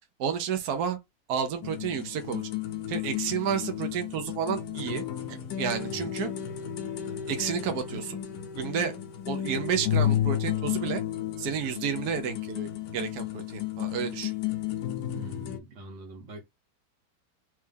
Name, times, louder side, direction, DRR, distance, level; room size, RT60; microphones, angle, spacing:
voice 1, 0.2-1.0 1.3-2.4 2.9-5.0 5.3-6.3 7.3-8.2 8.5-9.0 9.3-11.0 11.4-14.3, right 7 dB, 65° right, 1.3 m, -31 dB
sound 1, 1.6-15.6, left 11 dB, 65° left, 1.0 m, -32 dB
voice 2, 15.1-16.4, right 1 dB, 85° right, 1.9 m, -43 dB
3.3 x 3.3 x 3.4 m
omnidirectional pair, 1.9 m